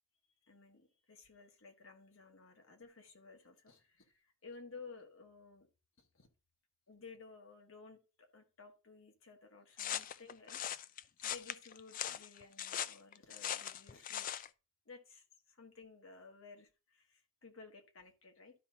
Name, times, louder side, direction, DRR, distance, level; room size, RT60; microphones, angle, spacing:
voice 1, 0.4-5.7 6.0-6.3 6.9-10.8 11.2-14.4 14.8-18.5, left 4 dB, 80° left, 4 dB, 1.6 m, -56 dB
sound 1, 9.8-14.5, left 10 dB, 45° left, 0.4 m, -40 dB
12.0 x 5.2 x 2.8 m, 0.32 s
head